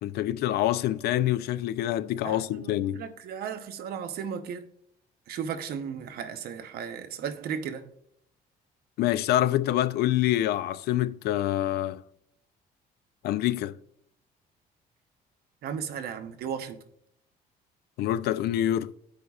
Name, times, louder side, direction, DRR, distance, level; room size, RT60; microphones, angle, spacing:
voice 1, 0.0-3.0 9.0-12.0 13.2-13.7 18.0-18.9, left 13 dB, 70° left, 0.4 m, -26 dB
voice 2, 2.2-4.7 5.3-7.9 15.6-16.8, right 7 dB, 65° right, 0.8 m, -35 dB
15.0 x 5.0 x 2.3 m
cardioid pair, 110°, 17 cm